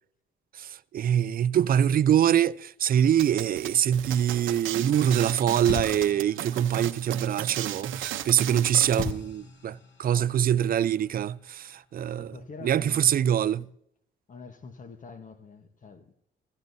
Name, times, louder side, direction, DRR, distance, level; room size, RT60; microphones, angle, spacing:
voice 1, 0.5-12.4 12.6-13.7, right 9 dB, 45° right, 0.4 m, -24 dB
sound 1, 3.2-9.1, right 12 dB, 80° right, 0.8 m, -35 dB
sound 2, 4.1-8.6 9.0-12.4, left 4 dB, 60° left, 2.7 m, -41 dB
voice 2, 10.1-10.4 12.2-13.7 14.3-16.1, left 5 dB, 40° left, 1.1 m, -46 dB
16.0 x 16.0 x 2.7 m
cardioid pair, 90°, 20 cm